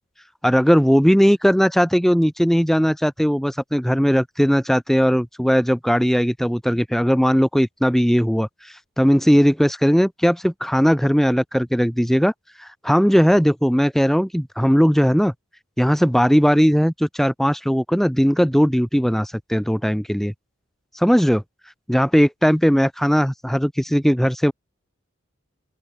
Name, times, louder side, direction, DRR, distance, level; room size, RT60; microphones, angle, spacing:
voice 1, 0.4-12.3 12.6-15.3 15.8-20.3 20.9-21.4 21.9-24.5, equal, ahead, 2.0 m, -18 dB
open air
head